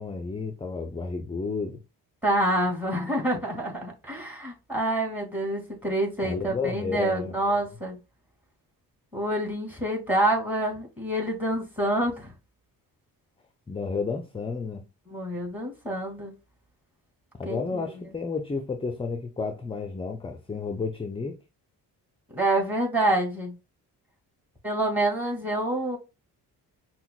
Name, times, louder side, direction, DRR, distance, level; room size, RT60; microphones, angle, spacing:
voice 1, 0.0-1.8 6.2-7.7 13.7-14.9 17.4-21.4, left 4 dB, 15° left, 0.4 m, -32 dB
voice 2, 2.2-8.0 9.1-12.3 15.1-16.3 17.5-18.0 22.3-23.5 24.6-26.0, right 1 dB, 5° right, 2.1 m, -27 dB
5.6 x 2.2 x 2.3 m
supercardioid pair, 65°, 43 cm